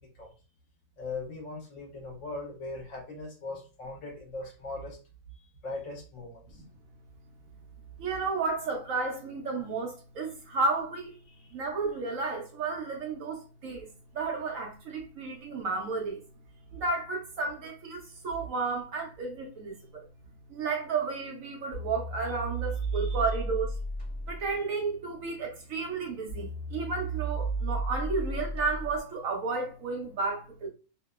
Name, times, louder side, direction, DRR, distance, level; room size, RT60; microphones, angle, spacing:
voice 1, 1.0-5.0 5.3-6.6 11.3-11.5 22.9-23.2, left 3 dB, 60° left, 1.1 m, -40 dB
voice 2, 8.0-11.1 11.5-13.9 14.1-16.2 16.7-20.1 20.5-23.8 24.3-30.7, right 4 dB, 70° right, 0.9 m, -32 dB
sound 1, 21.7-29.0, right 2 dB, 25° left, 0.9 m, -34 dB
2.7 x 2.0 x 2.2 m
omnidirectional pair, 1.6 m